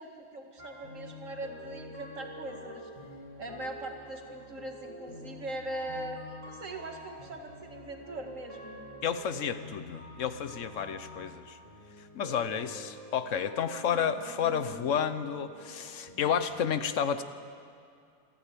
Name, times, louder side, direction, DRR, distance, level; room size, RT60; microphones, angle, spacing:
voice 1, 0.0-2.9 3.4-8.8, right 1 dB, 40° right, 2 dB, 2.5 m, -41 dB
sound 1, 0.6-16.5, equal, 15° right, 4.8 m, -47 dB
voice 2, 9.0-11.6 12.1-17.2, left 7 dB, 55° left, 11 dB, 0.9 m, -31 dB
27.5 x 13.5 x 8.5 m, 2.5 s
omnidirectional pair, 2.2 m